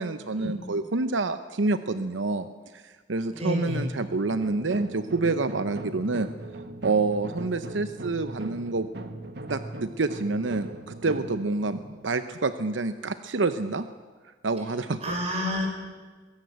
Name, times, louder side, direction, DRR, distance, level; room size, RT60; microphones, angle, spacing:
voice 1, 0.0-2.5 2.7-6.3 6.8-8.9 9.5-13.9 14.4-15.1, right 3 dB, 85° right, 11 dB, 0.8 m, -28 dB
voice 2, 3.3-3.9 15.0-15.7, left 1 dB, 35° right, 1 dB, 6.1 m, -29 dB
sound 1, 4.3-13.1, right 1 dB, 65° right, 1.7 m, -40 dB
22.0 x 17.5 x 8.1 m, 1.4 s
head